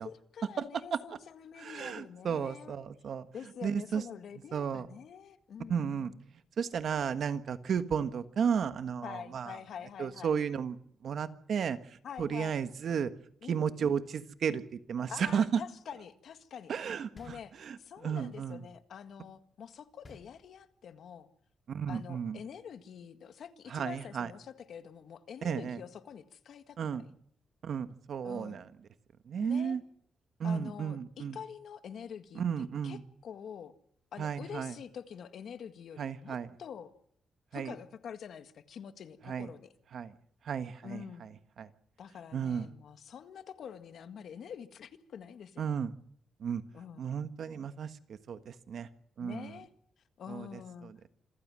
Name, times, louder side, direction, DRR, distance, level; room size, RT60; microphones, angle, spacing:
voice 1, 0.0-2.8 3.3-6.2 9.0-10.3 12.0-12.6 13.4-13.9 15.1-16.7 17.1-21.3 21.9-27.1 28.2-28.6 29.4-29.8 30.4-32.4 32.8-33.7 34.1-36.9 37.5-39.7 40.8-41.3 42.0-45.8 46.7-47.1 49.2-49.7 50.2-50.9, left 8 dB, 70° left, 9 dB, 1.8 m, -46 dB
voice 2, 1.6-3.3 3.6-4.0 4.5-4.9 5.7-6.1 6.6-9.6 10.0-10.8 11.0-11.8 12.2-13.1 13.5-14.6 14.9-15.6 16.7-18.6 21.7-22.4 23.7-24.3 25.4-25.8 26.8-27.0 27.6-28.7 29.3-29.8 30.4-31.4 32.3-33.0 34.2-34.7 36.0-36.5 37.5-37.7 39.2-39.5 39.9-40.1 40.4-41.3 41.6-41.7 42.3-42.7 45.6-45.9 46.4-46.6 47.0-48.9 49.2-49.6 50.3-51.0, right 7 dB, 60° right, 10 dB, 1.4 m, -33 dB
sound 1, 17.2-18.1 20.0-21.0, left 2 dB, 30° left, 2.7 m, -56 dB
27.0 x 15.5 x 7.6 m, 0.69 s
cardioid pair, 105°, 0 cm